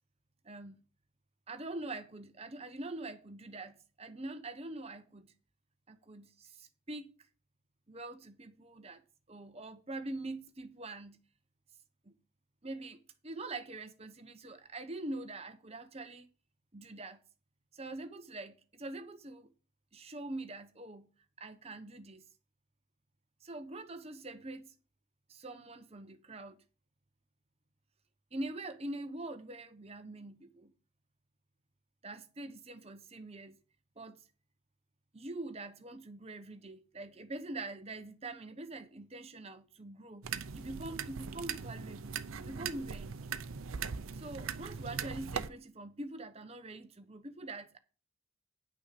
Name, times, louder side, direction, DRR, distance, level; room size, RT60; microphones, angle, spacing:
voice 1, 0.4-0.8 1.5-5.3 5.9-7.1 7.9-9.0 9.3-11.2 12.1-12.2 12.6-16.3 16.7-17.2 17.7-19.5 19.9-21.1 21.4-22.2 23.4-24.7 25.3-26.6 28.3-30.7 32.0-33.6 34.0-34.2 35.1-40.3 40.5-43.1 44.1-47.8, right 2 dB, 30° right, 0.8 m, -44 dB
sound 1, 40.2-45.5, right 6 dB, 70° right, 0.6 m, -40 dB
9.4 x 6.3 x 5.8 m
head